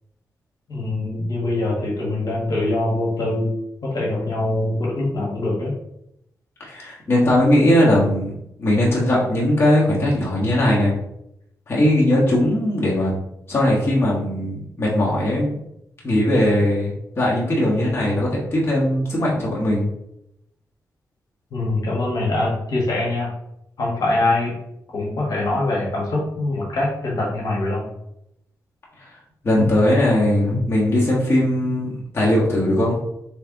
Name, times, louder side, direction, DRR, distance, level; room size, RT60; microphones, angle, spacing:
voice 1, 0.7-3.5 3.8-5.7 21.5-23.3 23.8-24.6 24.9-27.9, left 2 dB, 65° left, -4 dB, 1.5 m, -23 dB
voice 2, 6.6-8.3 8.6-10.9 11.7-13.1 13.5-15.6 16.0-19.9 29.4-33.0, left 1 dB, 35° left, -5 dB, 1.4 m, -19 dB
3.4 x 3.3 x 3.8 m, 0.79 s
cardioid pair, 75°, 7 cm